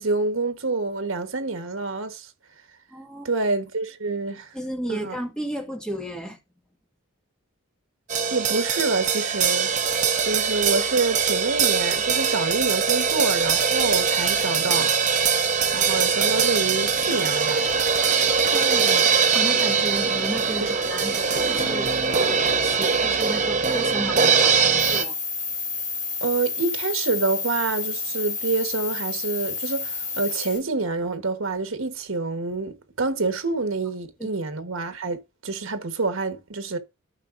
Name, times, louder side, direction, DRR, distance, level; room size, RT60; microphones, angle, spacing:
voice 1, 0.0-2.3 3.2-4.5 4.9-5.2 8.3-9.7 10.2-14.9 15.7-17.7 18.8-19.1 20.6-20.7 26.2-36.8, right 3 dB, 75° right, 1.3 m, -27 dB
voice 2, 2.9-3.3 4.5-6.4 18.5-18.9 19.3-21.9 22.6-25.2 34.2-34.3, right 1 dB, 5° left, 1.7 m, -33 dB
sound 1, 8.1-25.0, right 6 dB, 35° right, 1.0 m, -22 dB
sound 2, 17.0-22.8, left 3 dB, 85° left, 2.5 m, -39 dB
sound 3, 24.8-30.6, left 4 dB, 35° left, 1.9 m, -30 dB
13.5 x 5.8 x 2.6 m
head